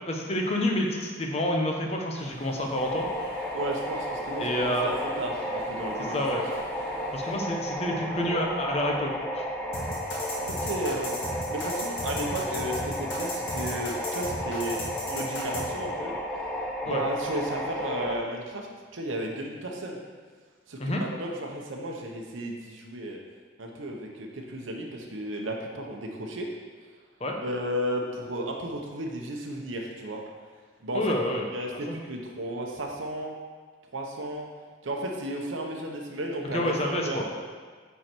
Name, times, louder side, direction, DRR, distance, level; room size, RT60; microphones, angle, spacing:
voice 1, 0.1-3.1 4.4-5.0 6.1-6.4 7.1-9.4 16.9-17.0 20.8-21.0 27.2-27.4 30.9-31.4 31.9-32.0 36.5-37.2, left 1 dB, 30° left, 1 dB, 1.0 m, -28 dB
sound 1, 2.2-7.4, right 1 dB, 55° right, 1.3 m, -45 dB
sound 2, 2.8-18.1, equal, 5° left, 0.6 m, -33 dB
voice 2, 3.5-6.2 10.4-11.1 11.5-16.1 16.8-18.7 18.9-20.0 20.7-23.2 23.6-26.5 27.4-30.2 30.8-31.1 31.5-33.3 33.9-34.5 34.8-37.4, right 1 dB, 85° right, 0 dB, 1.0 m, -34 dB
sound 3, 9.7-15.6, left 1 dB, 75° left, 2.0 m, -35 dB
9.6 x 4.7 x 4.5 m, 1.5 s
head